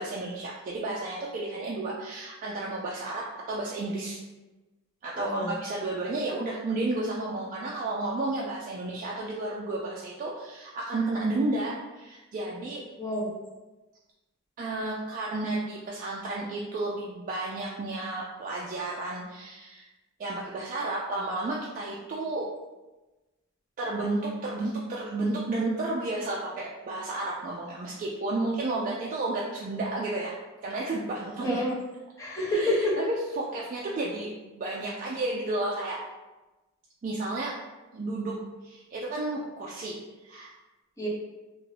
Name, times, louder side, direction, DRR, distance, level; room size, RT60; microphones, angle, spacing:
voice 1, 0.0-4.2 5.0-12.8 14.6-19.8 20.2-22.5 23.8-30.3 30.6-31.6 32.5-36.0 37.0-37.5 37.9-38.4 38.6-40.0 40.2-40.5, right 2 dB, 40° right, -4 dB, 0.3 m, -32 dB
voice 2, 5.1-5.5 13.0-13.3 31.4-31.7 32.2-32.9 41.0-41.1, left 1 dB, 15° left, -6 dB, 0.7 m, -28 dB
2.6 x 2.5 x 3.1 m, 1.1 s
head